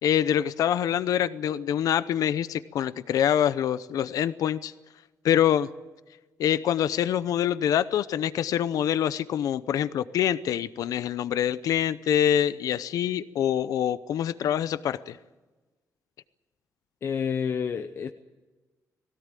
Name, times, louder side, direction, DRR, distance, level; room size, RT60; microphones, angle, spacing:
voice 1, 0.0-4.7 5.2-5.7 6.4-15.2, left 10 dB, 80° left, 0.7 m, -25 dB
voice 2, 17.0-18.1, left 7 dB, 45° left, 0.9 m, -29 dB
20.0 x 17.5 x 9.0 m
wide cardioid pair, 170°, 6 cm